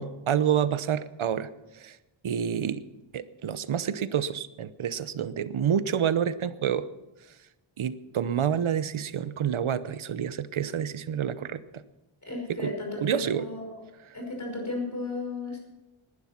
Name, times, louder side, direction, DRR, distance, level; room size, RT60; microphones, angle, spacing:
voice 1, 0.0-2.0 2.2-2.8 3.1-6.9 7.8-11.8 12.5-12.7 13.0-13.4, right 8 dB, 75° right, 15 dB, 0.9 m, -28 dB
voice 2, 12.2-13.8 14.1-15.6, left 2 dB, 35° left, 1 dB, 5.7 m, -34 dB
19.5 x 11.0 x 5.9 m, 1.0 s
wide cardioid pair, 125°, 48 cm